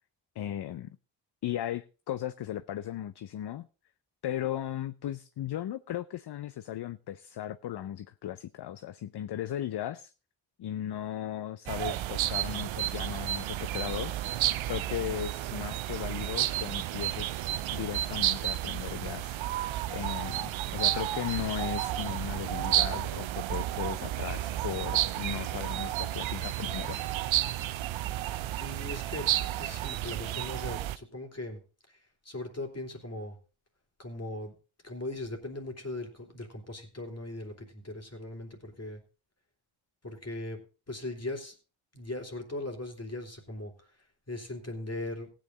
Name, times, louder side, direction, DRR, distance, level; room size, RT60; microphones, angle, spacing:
voice 1, 0.4-1.0 1.4-3.7 4.2-10.1 10.6-19.4 19.9-27.0, left 11 dB, 55° left, 0.6 m, -37 dB
sound 1, 11.7-31.0, right 13 dB, 75° right, 0.7 m, -31 dB
voice 2, 28.6-31.6 31.9-33.4 34.0-34.5 34.8-39.0 40.0-41.6 41.9-45.3, left 2 dB, 30° left, 3.1 m, -39 dB
15.5 x 8.9 x 3.9 m
cardioid pair, 55°, 47 cm